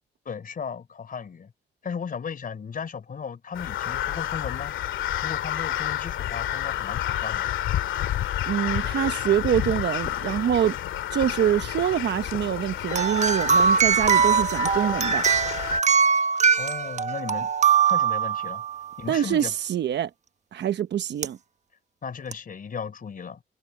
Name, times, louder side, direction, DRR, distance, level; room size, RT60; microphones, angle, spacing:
voice 1, 0.3-1.5 1.8-4.7 5.2-7.5 16.6-17.5 17.9-18.6 19.0-19.5 22.0-23.4, left 6 dB, 45° left, 3.9 m, -35 dB
Crow, 3.5-15.8, left 12 dB, 80° left, 2.1 m, -30 dB
voice 2, 8.5-10.8 11.1-15.3 19.1-20.1 20.5-21.4, right 10 dB, 60° right, 1.0 m, -25 dB
sound 1, 12.9-18.9 21.2-21.3 22.3-22.4, right 6 dB, 35° right, 1.2 m, -22 dB
cardioid pair, 90°, 20 cm